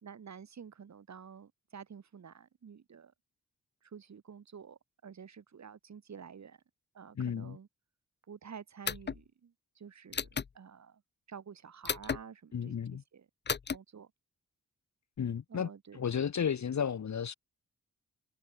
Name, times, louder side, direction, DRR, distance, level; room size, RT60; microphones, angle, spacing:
voice 1, 0.0-3.1 3.8-6.6 6.9-7.7 8.3-11.0 11.3-13.3 13.7-14.1 15.5-16.0, right 7 dB, 55° right, 1.7 m, -50 dB
voice 2, 7.2-7.6 12.5-13.0 15.2-17.3, left 7 dB, 60° left, 1.2 m, -33 dB
sound 1, 8.8-9.2 10.1-10.5 11.8-12.2 13.5-13.8, left 6 dB, 35° left, 0.6 m, -33 dB
cardioid pair, 80°, 32 cm